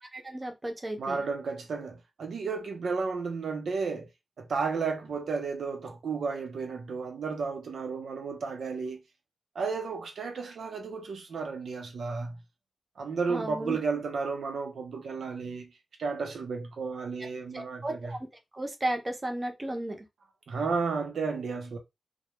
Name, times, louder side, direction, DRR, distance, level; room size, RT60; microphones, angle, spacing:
voice 1, 0.1-1.2 13.3-13.8 17.5-18.2 18.5-20.0, right 1 dB, 25° right, 0.6 m, -34 dB
voice 2, 1.0-4.1 4.4-9.0 9.5-12.4 13.0-15.7 16.0-18.2 20.5-21.8, right 4 dB, 90° right, 0.6 m, -33 dB
2.2 x 2.1 x 2.9 m
wide cardioid pair, 115°, 0 cm